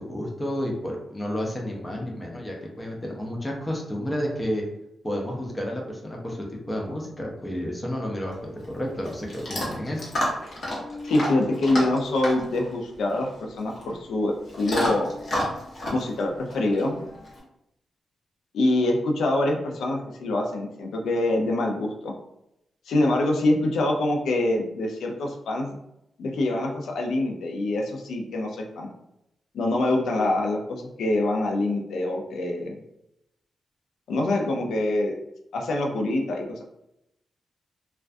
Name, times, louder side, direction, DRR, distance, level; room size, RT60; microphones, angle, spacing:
voice 1, 0.0-4.6 5.0-10.1, equal, 15° left, -1 dB, 0.4 m, -31 dB
Chewing mastication / Dog, 8.3-17.4, left 1 dB, 45° left, 0.7 m, -32 dB
voice 2, 11.0-15.1 15.9-17.0 18.5-22.1 22.9-25.8 26.2-28.9 29.5-32.8 34.1-35.1 35.5-36.6, left 2 dB, 85° left, 1 dB, 0.4 m, -25 dB
2.3 x 2.1 x 2.5 m, 0.84 s
wide cardioid pair, 170°, 0 cm